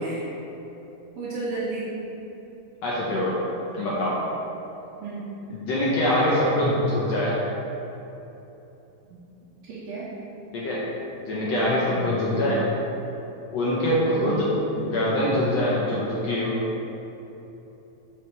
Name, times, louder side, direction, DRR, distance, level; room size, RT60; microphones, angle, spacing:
voice 1, 1.2-1.8 5.0-5.2 9.1-9.2 9.7-10.1 11.4-11.5 12.0-12.5 14.1-14.4, right 3 dB, 75° right, -10 dB, 2.9 m, -33 dB
voice 2, 2.8-3.3 3.7-4.2 5.5-7.4 10.5-10.8 11.3-12.6 13.5-16.5, left 1 dB, 70° left, -7 dB, 1.6 m, -24 dB
11.0 x 5.0 x 3.3 m, 3.0 s
omnidirectional pair, 4.1 m